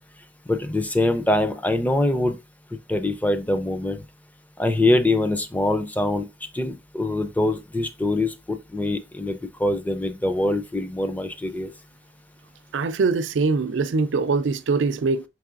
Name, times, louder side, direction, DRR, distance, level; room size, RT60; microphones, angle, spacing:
voice 1, 0.5-2.4 2.9-4.0 4.6-6.3 6.5-11.7, left 1 dB, 10° left, 0.4 m, -24 dB
voice 2, 12.7-15.2, right 4 dB, 85° right, 0.4 m, -22 dB
4.7 x 3.2 x 2.4 m
head